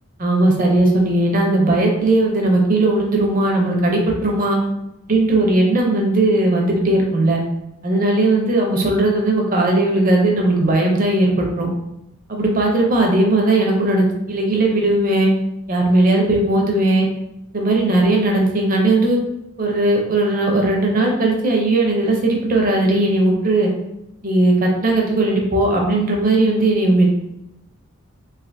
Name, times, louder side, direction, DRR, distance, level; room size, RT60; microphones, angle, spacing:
voice 1, 0.2-4.6 5.1-7.4 7.8-11.7 12.3-15.3 15.7-17.1 17.5-19.2 19.6-23.7 24.2-27.3, right 2 dB, 40° right, 0 dB, 0.6 m, -17 dB
3.2 x 2.6 x 2.6 m, 0.87 s
head